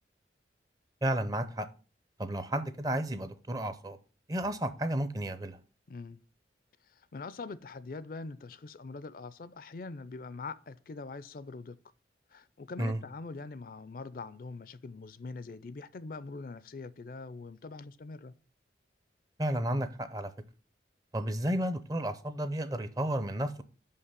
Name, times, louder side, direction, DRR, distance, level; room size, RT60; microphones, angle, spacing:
voice 1, 1.0-1.7 2.2-4.0 4.3-5.6 12.8-13.0 19.4-20.3 21.1-23.6, right 1 dB, 20° right, 0.5 m, -32 dB
voice 2, 5.9-6.2 6.8-11.8 12.3-18.3, left 3 dB, 50° left, 0.4 m, -43 dB
5.8 x 5.6 x 6.6 m
head